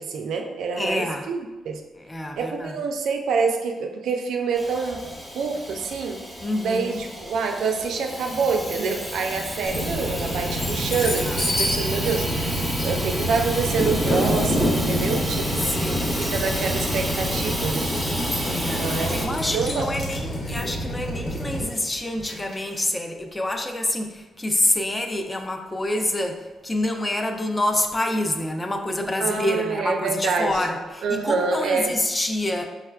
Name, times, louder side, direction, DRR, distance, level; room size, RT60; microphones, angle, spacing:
voice 1, 0.0-1.8 2.4-5.0 5.3-6.2 6.6-15.8 16.2-17.9 18.7-19.9 29.2-30.7 31.0-31.9, right 4 dB, 75° right, 3 dB, 0.3 m, -26 dB
voice 2, 0.8-1.2 2.1-2.7 6.4-7.0 11.0-11.4 15.7-16.3 18.5-32.6, left 1 dB, 20° left, 4 dB, 0.4 m, -27 dB
Hiss / Toilet flush / Trickle dribble, 4.6-19.3, equal, ahead, 0.9 m, -31 dB
sound 1, 8.7-9.1 9.5-22.8, left 1 dB, 55° left, 0.8 m, -29 dB
Drill, 9.7-21.6, equal, 70° left, 1.1 m, -30 dB
4.7 x 2.1 x 2.3 m, 1.2 s
supercardioid pair, 50°, 0 cm